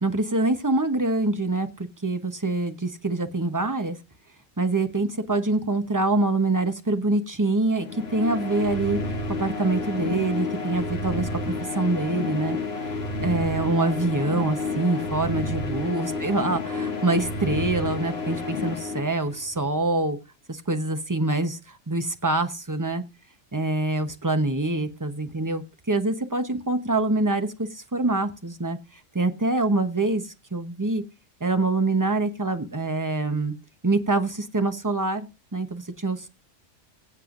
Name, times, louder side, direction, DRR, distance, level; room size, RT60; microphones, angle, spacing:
voice 1, 0.0-4.0 4.6-12.6 13.2-20.2 20.5-23.0 23.5-28.8 29.1-31.0 31.4-33.5 33.8-36.3, right 2 dB, 15° right, 7 dB, 0.8 m, -25 dB
sound 1, 7.8-19.6, left 3 dB, 55° left, 1.8 m, -30 dB
22.5 x 7.7 x 2.5 m, 0.30 s
omnidirectional pair, 1.3 m